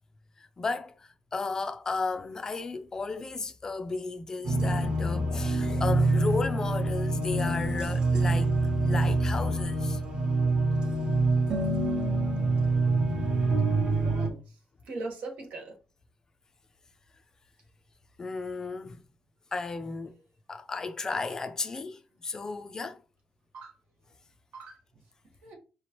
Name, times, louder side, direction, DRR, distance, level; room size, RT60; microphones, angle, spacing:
voice 1, 0.4-8.5 8.8-10.0 18.2-19.0 19.5-20.1 20.5-23.0, left 3 dB, 25° left, 0.4 m, -34 dB
sound 1, 4.4-14.3, right 2 dB, 40° right, 0.9 m, -26 dB
voice 2, 13.8-14.4 14.8-15.7 23.5-23.7 24.5-24.8 25.4-25.6, right 3 dB, 90° right, 1.4 m, -39 dB
4.8 x 3.0 x 3.0 m
cardioid pair, 170°, 3 cm